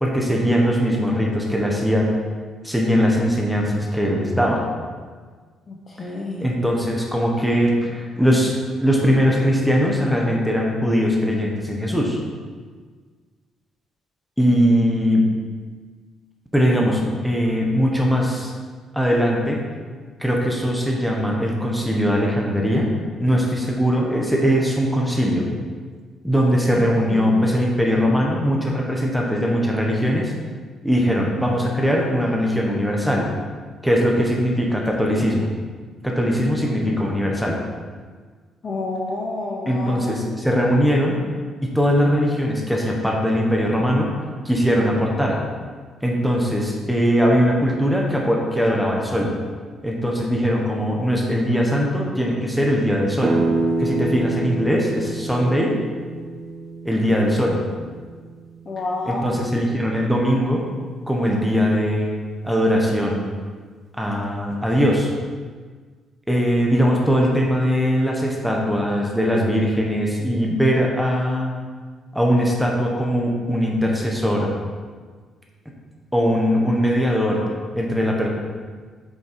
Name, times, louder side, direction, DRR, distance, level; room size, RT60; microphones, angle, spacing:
voice 1, 0.0-2.1 2.6-4.6 6.4-12.2 14.4-15.2 16.5-18.5 18.9-19.6 20.2-22.9 23.2-25.5 26.2-30.3 30.8-33.3 33.8-35.5 36.0-37.6 39.7-41.2 41.6-44.1 44.4-45.4 46.0-49.3 49.8-53.4 53.8-55.8 56.8-57.6 59.1-60.6 61.1-62.2 62.4-63.2 64.0-65.1 66.3-71.5 72.1-74.5 76.1-77.4 77.7-78.3, equal, ahead, -2 dB, 1.1 m, -20 dB
voice 2, 5.7-6.5 26.7-27.4 38.6-40.3 57.5-57.7 58.6-59.5, left 2 dB, 30° left, 0 dB, 0.8 m, -30 dB
sound 1, 53.2-58.8, right 2 dB, 30° right, 0.7 m, -27 dB
8.2 x 6.3 x 4.7 m, 1.6 s
cardioid pair, 170°, 0 cm